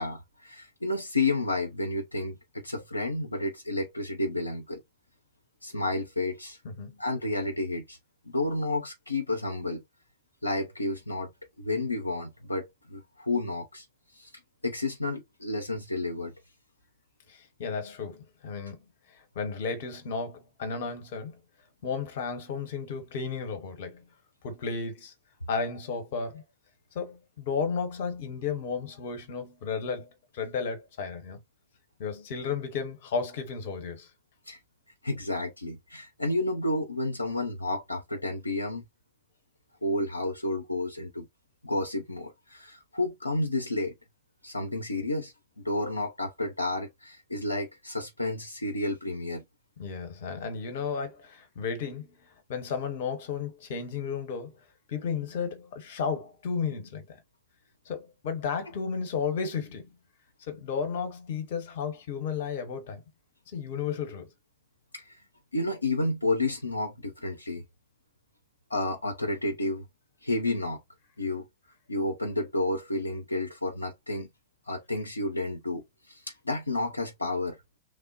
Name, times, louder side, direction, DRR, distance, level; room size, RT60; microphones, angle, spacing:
voice 1, 0.0-4.8 5.6-6.6 7.0-8.0 8.3-9.8 10.4-11.3 11.6-13.9 14.1-14.3 14.6-16.3 34.5-34.6 35.0-38.8 39.8-41.3 41.6-43.9 44.4-49.4 64.9-65.2 65.5-67.6 68.7-69.8 70.2-70.8 71.2-71.5 71.9-74.3 74.7-77.8, left 2 dB, 85° left, 0.4 m, -31 dB
voice 2, 6.6-7.0 17.3-18.8 19.1-21.4 21.8-24.0 24.4-25.1 25.5-26.4 26.9-31.4 32.0-34.1 49.8-52.2 52.5-54.6 54.9-57.2 57.9-59.9 60.5-63.0 63.5-64.3, left 5 dB, 55° left, 0.9 m, -33 dB
3.2 x 2.0 x 2.6 m
figure-of-eight pair, 90°, 0 cm